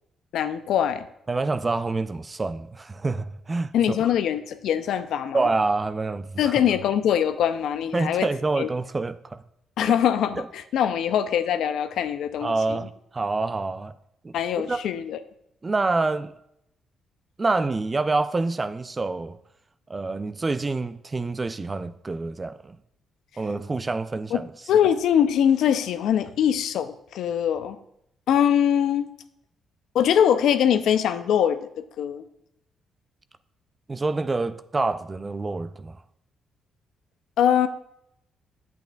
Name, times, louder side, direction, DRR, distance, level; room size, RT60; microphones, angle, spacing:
voice 1, 0.3-1.1 3.7-5.4 6.4-8.3 8.6-8.7 9.8-12.8 14.3-15.2 24.3-24.4 24.7-27.8 28.3-29.1 29.9-31.7 32.0-32.2 37.4-37.7, left 9 dB, 75° left, 0.5 m, -22 dB
voice 2, 1.3-4.0 5.3-6.6 7.9-9.4 9.9-10.0 12.4-13.9 14.2-14.3 14.7-14.8 15.6-16.3 17.4-19.4 19.9-22.8 23.4-24.4 33.9-36.0, right 3 dB, 25° right, 0.4 m, -27 dB
9.0 x 8.2 x 2.3 m
cardioid pair, 90°, 0 cm